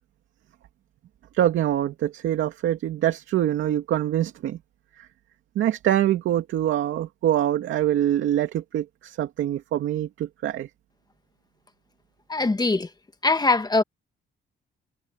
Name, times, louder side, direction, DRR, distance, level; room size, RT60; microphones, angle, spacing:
voice 1, 1.3-4.6 5.6-10.7, right 11 dB, 80° right, 2.5 m, -24 dB
voice 2, 12.3-12.9 13.2-13.8, left 3 dB, 20° left, 1.7 m, -21 dB
cardioid pair, 90°, 20 cm